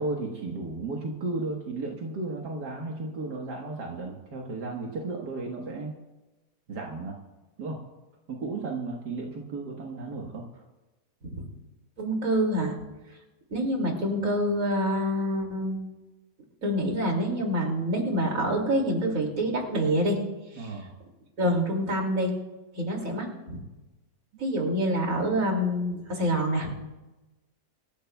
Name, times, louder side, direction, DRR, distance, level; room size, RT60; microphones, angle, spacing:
voice 1, 0.0-6.0 6.7-7.2 7.6-7.8 8.3-10.6 20.6-20.9 24.6-24.7, right 3 dB, 80° right, -1 dB, 2.0 m, -34 dB
voice 2, 12.0-12.8 13.5-15.8 16.6-20.2 20.6-20.7 21.4-22.3 22.7-23.6 24.4-26.7, equal, 55° right, 1 dB, 3.0 m, -26 dB
24.5 x 14.5 x 2.3 m, 1.1 s
omnidirectional pair, 1.8 m